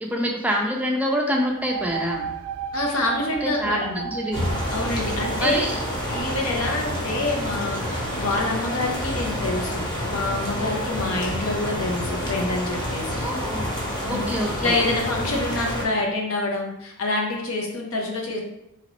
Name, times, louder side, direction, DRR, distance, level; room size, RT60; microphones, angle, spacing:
voice 1, 0.0-2.3 3.4-3.8 4.0-4.5 5.4-5.8 13.2-13.8 14.0-14.7, equal, 5° right, 0 dB, 0.4 m, -26 dB
sound 1, 1.5-8.9, right 7 dB, 85° right, 0.3 m, -36 dB
voice 2, 2.7-4.0 4.7-5.7 6.1-13.2 14.1-14.3 14.6-18.4, left 2 dB, 75° left, 0 dB, 0.8 m, -27 dB
sound 2, 4.3-15.8, equal, 20° left, 1.0 m, -28 dB
3.9 x 2.9 x 3.1 m, 0.84 s
head